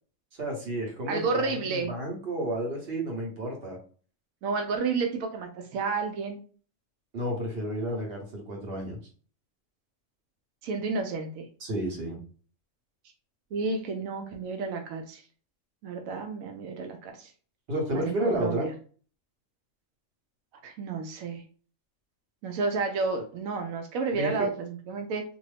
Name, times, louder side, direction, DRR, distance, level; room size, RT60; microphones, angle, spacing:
voice 1, 0.3-3.8 7.1-9.0 11.6-12.2 17.7-18.7 24.1-24.5, right 1 dB, 50° right, 0 dB, 1.2 m, -31 dB
voice 2, 1.1-1.9 4.4-6.4 10.6-11.5 13.5-15.2 15.8-17.3 17.9-18.7 20.6-21.4 22.4-25.2, right 4 dB, 85° right, 4 dB, 1.0 m, -31 dB
2.6 x 2.6 x 3.2 m, 0.41 s
omnidirectional pair, 1.4 m